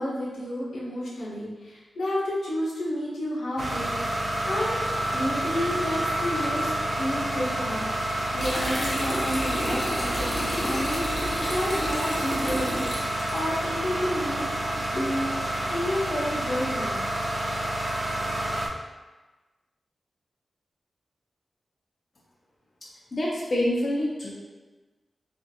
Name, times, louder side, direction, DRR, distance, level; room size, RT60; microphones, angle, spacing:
voice 1, 0.0-6.7 7.0-14.4 14.7-17.0, equal, 85° left, -6 dB, 0.7 m, -31 dB
sound 1, 3.6-18.7, right 1 dB, 70° right, 0.5 m, -29 dB
sound 2, 8.4-13.6, equal, 15° left, 0.8 m, -32 dB
voice 2, 23.1-24.3, left 1 dB, 45° left, -4 dB, 0.4 m, -26 dB
2.5 x 2.4 x 2.6 m, 1.3 s
wide cardioid pair, 90°, 0 cm